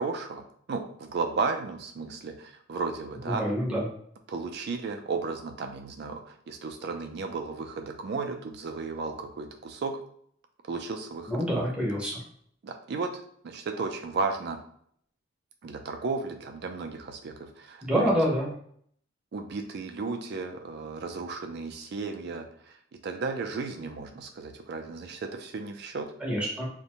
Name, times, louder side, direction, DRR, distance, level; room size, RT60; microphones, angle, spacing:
voice 1, 0.0-3.4 4.3-10.0 10.6-11.7 12.6-13.1 13.4-14.6 15.6-18.1 19.3-22.8 23.0-26.1, right 4 dB, 55° right, 5 dB, 0.3 m, -34 dB
voice 2, 3.3-3.9 11.3-12.2 17.8-18.5 26.2-26.7, equal, 5° right, -4 dB, 0.6 m, -27 dB
2.5 x 2.1 x 2.9 m, 0.64 s
head